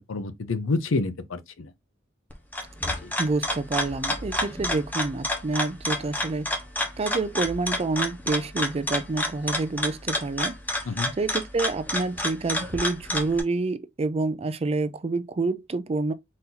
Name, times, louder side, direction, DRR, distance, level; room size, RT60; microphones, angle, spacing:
voice 1, 0.0-1.7 3.0-3.1 10.8-11.1, left 3 dB, 75° left, 0.6 m, -28 dB
sound 1, 2.3-13.4, left 1 dB, 10° left, 0.8 m, -29 dB
voice 2, 3.2-6.5 7.0-10.6 11.2-16.1, right 3 dB, 30° right, 0.4 m, -28 dB
4.2 x 2.6 x 3.8 m
head